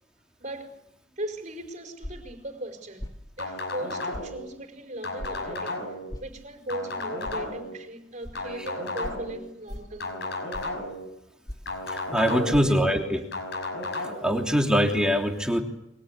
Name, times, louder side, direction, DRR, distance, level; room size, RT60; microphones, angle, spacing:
voice 1, 0.4-3.1 3.4-5.9 6.2-10.5 12.3-13.2, right 1 dB, 40° right, 5.0 m, -38 dB
sound 1, 2.0-2.3 3.0-3.2 4.1-4.3 5.2-5.4 6.1-6.3 7.2-7.4 8.2-8.4 9.0-9.2 9.7-9.9 10.5-10.8 11.5-11.8 12.5-12.6, left 1 dB, 20° left, 2.7 m, -38 dB
sound 2, 3.4-4.4 5.0-6.1 6.7-7.7 8.3-9.4 10.0-11.1 11.7-12.7 13.3-14.2, left 2 dB, 55° left, 5.7 m, -33 dB
voice 2, 11.8-13.2 14.0-15.6, equal, 5° right, 3.2 m, -23 dB
29.0 x 24.0 x 8.4 m
head